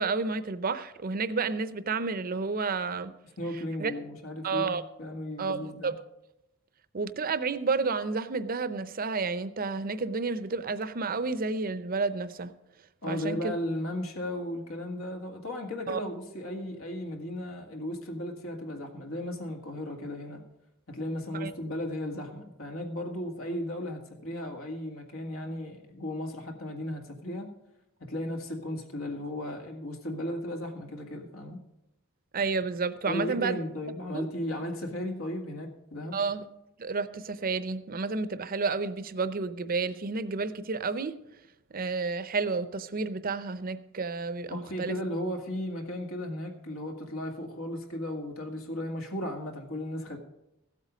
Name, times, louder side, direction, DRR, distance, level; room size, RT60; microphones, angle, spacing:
voice 1, 0.0-3.1 3.8-3.9 4.4-4.8 5.4-5.9 6.9-12.5 13.1-13.5 15.9-16.0 21.3-21.5 32.3-33.6 34.1-34.3 36.1-36.4 36.8-41.1 41.7-45.0, right 4 dB, 45° right, 13 dB, 0.6 m, -30 dB
voice 2, 3.4-5.9 13.0-20.4 20.9-27.5 28.0-31.6 33.1-36.2 44.5-50.2, left 1 dB, 75° left, 3 dB, 1.9 m, -35 dB
15.5 x 8.3 x 5.1 m, 0.88 s
head